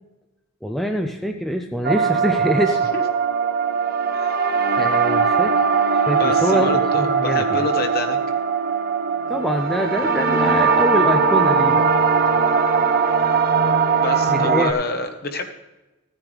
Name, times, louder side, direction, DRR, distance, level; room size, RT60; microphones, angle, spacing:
voice 1, 0.6-2.8 4.8-5.5 5.9-7.6 9.3-11.9 14.3-14.7, equal, ahead, 4 dB, 0.5 m, -24 dB
sound 1, 1.8-14.7, right 5 dB, 45° right, 0.8 m, -20 dB
voice 2, 4.1-4.4 6.2-8.2 14.0-15.5, left 2 dB, 45° left, 5 dB, 1.2 m, -26 dB
15.5 x 9.5 x 3.3 m, 1.1 s
head